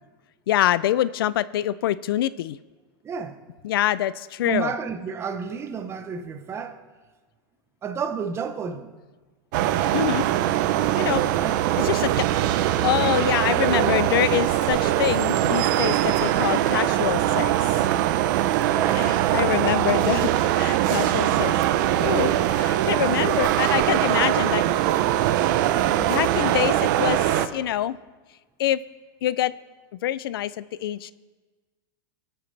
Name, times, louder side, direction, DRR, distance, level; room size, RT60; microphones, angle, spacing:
voice 1, 0.5-2.6 3.6-4.7 9.9-10.3 11.0-11.3 11.8-17.5 18.9-21.5 22.0-25.0 26.0-28.0 28.6-28.8 29.2-29.5 30.0-31.1, left 12 dB, 85° left, 0.4 m, -25 dB
voice 2, 3.0-3.4 4.4-6.8 7.8-8.9 11.3-11.6 18.7-19.5, right 6 dB, 20° right, 0.9 m, -31 dB
sound 1, 9.5-27.5, right 12 dB, 55° right, 0.7 m, -22 dB
23.0 x 9.1 x 3.3 m
supercardioid pair, 140°, 12 cm